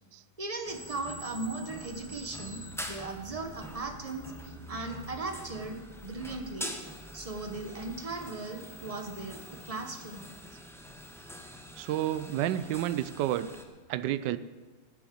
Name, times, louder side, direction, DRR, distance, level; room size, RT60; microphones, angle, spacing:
voice 1, 0.4-6.7 7.1-10.3, right 3 dB, 20° right, 5 dB, 1.1 m, -38 dB
sound 1, 0.6-13.6, equal, ahead, 0.8 m, -45 dB
voice 2, 11.8-13.5 13.9-14.4, right 12 dB, 75° right, 14 dB, 1.2 m, -30 dB
15.0 x 8.0 x 7.7 m, 1.3 s
omnidirectional pair, 2.0 m